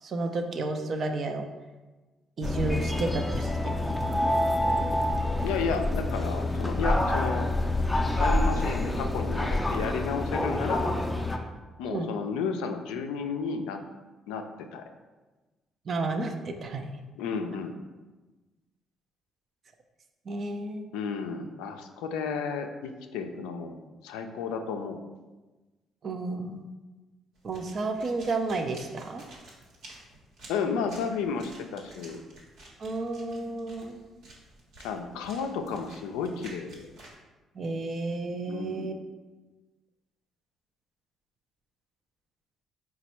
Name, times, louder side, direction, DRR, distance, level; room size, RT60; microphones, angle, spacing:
voice 1, 0.0-1.4 2.4-3.9 11.9-12.1 15.9-16.9 20.3-20.8 26.0-26.7 27.4-29.2 32.8-34.0 37.6-39.0, right 3 dB, 50° right, 5 dB, 0.5 m, -32 dB
sound 1, 2.4-11.4, left 1 dB, 10° left, 0.5 m, -27 dB
voice 2, 5.4-7.5 8.2-10.9 11.8-13.8 14.3-14.8 17.2-17.8 20.9-25.0 30.5-32.2 34.8-36.9 38.5-39.0, left 5 dB, 85° left, 5 dB, 0.3 m, -32 dB
sound 2, 27.3-37.1, right 1 dB, 75° right, 1.1 m, -51 dB
4.1 x 2.2 x 4.3 m, 1.2 s
supercardioid pair, 60°, 0 cm